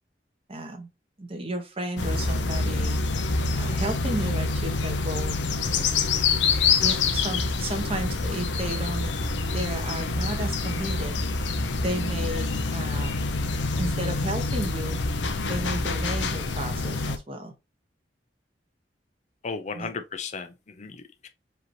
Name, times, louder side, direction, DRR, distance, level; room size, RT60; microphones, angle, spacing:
voice 1, 0.5-0.9 1.2-3.0 3.5-5.4 5.6-5.9 6.8-11.2 11.8-13.2 13.8-15.0 15.5-17.5 19.7-19.9, right 1 dB, 30° right, 1.1 m, -33 dB
sound 1, 2.0-17.2, left 3 dB, 85° left, 0.7 m, -26 dB
voice 2, 19.4-21.3, left 5 dB, 40° left, 0.5 m, -35 dB
5.0 x 2.9 x 3.0 m
head